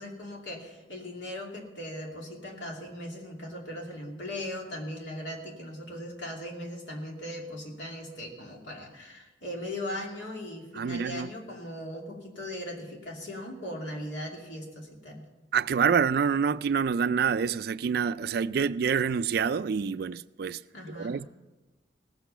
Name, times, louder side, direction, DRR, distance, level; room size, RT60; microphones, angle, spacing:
voice 1, 0.0-15.2 20.7-21.2, left 1 dB, 90° left, 2.7 m, -39 dB
voice 2, 10.8-11.3 15.5-20.6 21.0-21.3, right 6 dB, 60° right, 0.4 m, -27 dB
18.5 x 8.2 x 5.6 m
head